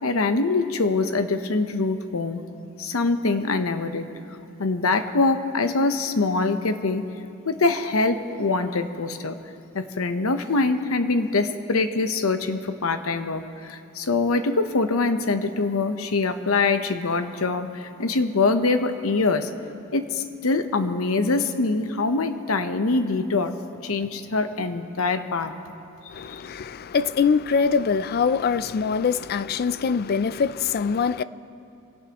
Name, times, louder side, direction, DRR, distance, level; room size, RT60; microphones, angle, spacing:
voice 1, 0.0-2.4 2.8-4.1 4.6-7.0 7.4-9.4 9.7-19.5 19.9-23.6 23.8-25.5 26.2-26.4, left 3 dB, 85° left, 0.9 m, -24 dB
voice 2, 26.1-31.2, left 5 dB, 50° left, 0.4 m, -23 dB
25.5 x 17.5 x 3.0 m
head